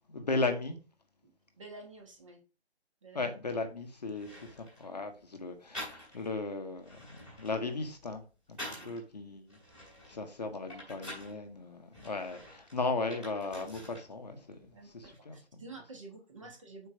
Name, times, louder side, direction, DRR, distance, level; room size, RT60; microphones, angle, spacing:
voice 1, 0.1-0.8 3.1-8.2 8.5-9.6 10.1-15.6, left 3 dB, 40° left, 0.9 m, -36 dB
voice 2, 1.6-2.4 3.0-3.3 8.8-8.9 14.7-16.9, right 3 dB, 30° right, 1.2 m, -49 dB
sound 1, 3.7-3.8 4.1-4.9 5.7-6.4 6.7-9.0 9.5-11.4 11.9-14.1 14.4-15.2, equal, 5° right, 1.6 m, -47 dB
5.0 x 4.4 x 4.9 m
figure-of-eight pair, 165°, 33 cm